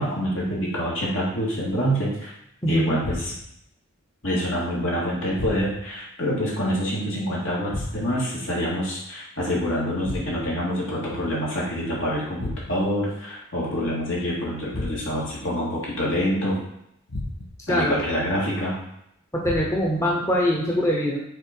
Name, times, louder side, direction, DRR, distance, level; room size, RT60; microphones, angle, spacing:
voice 1, 0.0-2.3 2.7-3.3 4.2-16.6 17.7-18.8, equal, 70° left, -5 dB, 2.6 m, -26 dB
voice 2, 2.6-3.0 17.7-18.0 19.3-21.2, equal, 15° left, -3 dB, 0.9 m, -23 dB
sound 1, 3.0-3.6 5.3-6.0 7.7-8.3 10.0-10.7 12.4-13.0 14.7-15.3 17.1-17.7 19.4-20.0, left 1 dB, 85° left, 1.3 m, -34 dB
6.5 x 4.3 x 4.6 m, 0.77 s
head